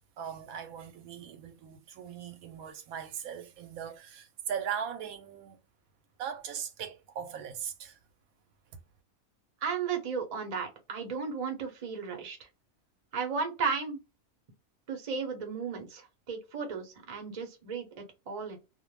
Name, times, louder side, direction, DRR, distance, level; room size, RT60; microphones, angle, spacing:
voice 1, 0.2-5.6 6.2-8.0 8.7-8.8, right 8 dB, 85° right, 1.0 m, -39 dB
voice 2, 9.6-12.5 13.1-14.0 14.9-18.6, right 5 dB, 35° right, 0.6 m, -35 dB
2.5 x 2.1 x 3.0 m
omnidirectional pair, 1.5 m